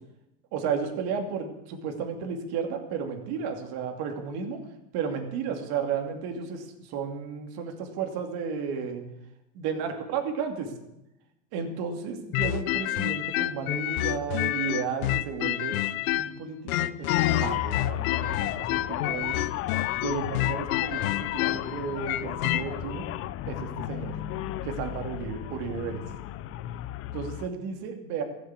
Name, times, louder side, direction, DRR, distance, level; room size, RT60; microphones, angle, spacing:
voice 1, 0.5-4.6 4.9-9.0 9.5-10.7 11.5-19.4 20.0-23.1 23.5-24.2 24.6-26.0 27.1-28.2, right 6 dB, 50° right, 5 dB, 2.7 m, -33 dB
sound 1, 12.3-16.4 16.7-22.7, left 15 dB, 65° left, 0.8 m, -28 dB
sound 2, 17.1-27.5, left 14 dB, 30° left, 0.5 m, -34 dB
14.5 x 7.6 x 8.3 m, 0.90 s
hypercardioid pair, 110°, 47 cm